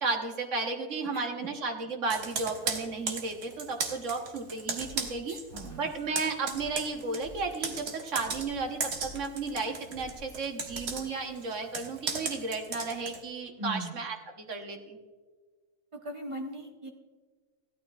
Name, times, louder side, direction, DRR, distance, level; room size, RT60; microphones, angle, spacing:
voice 1, 0.0-5.4 5.7-15.0, right 3 dB, 50° right, 3 dB, 1.5 m, -34 dB
voice 2, 1.1-1.5 5.0-5.9 13.6-13.9 15.9-16.9, right 1 dB, 20° right, 1 dB, 1.1 m, -40 dB
Computer keyboard, 2.1-5.7 6.0-13.2, right 5 dB, 75° right, 1.7 m, -36 dB
Scratching (performance technique), 4.8-5.1 5.5-5.8 6.5-6.8 7.2-7.5 8.2-8.6 8.9-9.3 9.9-10.3 10.7-11.0, left 1 dB, 35° left, 2.5 m, -49 dB
16.0 x 12.5 x 2.4 m, 1.5 s
omnidirectional pair, 1.7 m